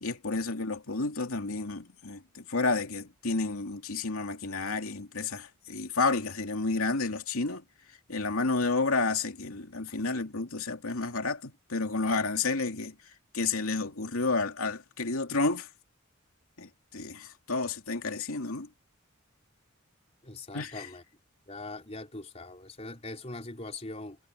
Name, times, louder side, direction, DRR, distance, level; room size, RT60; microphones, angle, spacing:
voice 1, 0.0-7.6 8.1-12.9 13.3-15.7 16.6-18.7 20.5-20.9, left 3 dB, 85° left, 2.7 m, -31 dB
voice 2, 20.2-21.0 21.5-24.2, left 2 dB, 30° left, 4.2 m, -41 dB
head